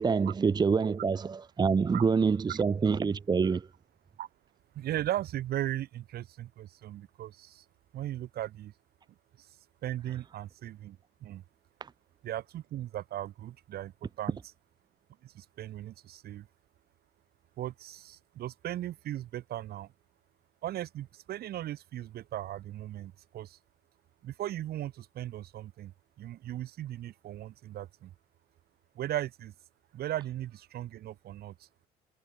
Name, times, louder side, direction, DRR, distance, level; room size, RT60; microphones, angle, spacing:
voice 1, 0.0-3.7 11.8-11.9, right 5 dB, 25° right, 0.8 m, -26 dB
voice 2, 4.7-7.6 7.9-8.7 9.4-9.5 9.8-11.4 12.2-14.4 15.2-16.5 17.6-19.9 20.6-23.6 24.2-25.9 26.2-28.1 28.9-29.5 29.9-31.7, right 13 dB, 65° right, 6.0 m, -37 dB
cardioid pair, 110°, 17 cm